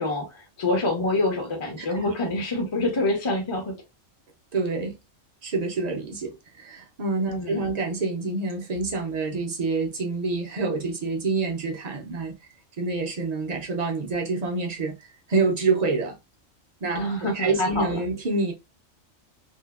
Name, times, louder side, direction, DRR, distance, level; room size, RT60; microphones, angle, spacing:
voice 1, 0.0-3.7 7.3-7.6 16.9-18.0, left 2 dB, 30° left, 0.5 m, -26 dB
voice 2, 4.5-5.0 5.4-12.3 12.8-15.0 15.3-16.1 16.8-17.1 17.3-18.5, right 3 dB, 45° right, 0.6 m, -27 dB
2.7 x 2.4 x 2.3 m
omnidirectional pair, 1.4 m